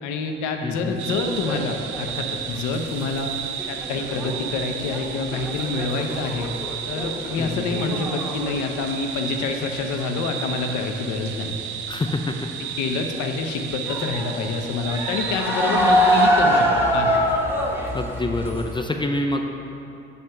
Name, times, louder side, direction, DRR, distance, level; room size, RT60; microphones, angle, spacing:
voice 1, 0.0-3.3 3.7-6.5 6.9-11.6 12.8-17.2, left 4 dB, 75° left, 4 dB, 0.7 m, -27 dB
voice 2, 0.6-1.1 7.4-7.8 11.9-12.3 17.9-19.4, left 2 dB, 15° left, 3 dB, 0.4 m, -27 dB
sound 1, 0.9-3.3 3.6-8.7 8.9-9.4 9.8-10.3 12.1-12.4 12.8-12.9 13.9-18.8, equal, 5° right, 1.1 m, -24 dB
sound 2, 1.0-16.3, right 9 dB, 75° right, 0.5 m, -33 dB
8.0 x 3.2 x 5.6 m, 2.8 s
hypercardioid pair, 60°, 30 cm